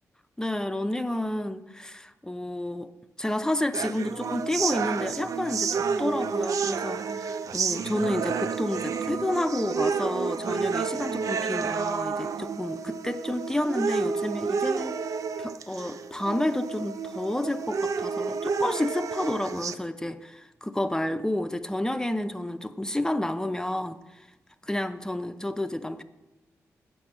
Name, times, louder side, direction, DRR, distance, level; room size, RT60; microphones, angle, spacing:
voice 1, 0.4-2.9 3.2-15.0 15.4-24.3 24.6-26.0, left 1 dB, 10° left, 8 dB, 0.6 m, -30 dB
sound 1, 3.7-19.7, right 5 dB, 65° right, 0.4 m, -30 dB
7.5 x 6.1 x 7.4 m, 1.0 s
cardioid pair, 55°, 6 cm